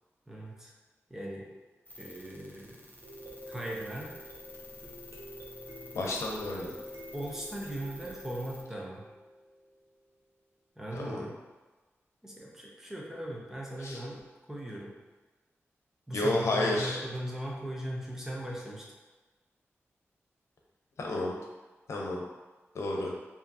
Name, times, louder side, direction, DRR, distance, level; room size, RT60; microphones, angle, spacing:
voice 1, 0.3-0.7 1.1-1.5 2.0-2.8 3.5-4.1 7.1-9.1 10.8-11.3 12.2-14.2 14.5-14.9 16.1-18.9, right 1 dB, 10° right, -3 dB, 0.8 m, -38 dB
sound 1, 1.9-8.6, left 1 dB, 35° left, 0.6 m, -50 dB
sound 2, 3.0-9.9 14.2-14.3 14.7-14.8, equal, 70° right, 0.8 m, -48 dB
voice 2, 5.9-6.7 10.9-11.2 13.8-14.0 16.1-17.0 21.0-21.4 21.9-22.2 22.7-23.1, left 2 dB, 90° left, -1 dB, 0.7 m, -31 dB
4.8 x 2.8 x 2.8 m, 1.2 s
wide cardioid pair, 130°, 5 cm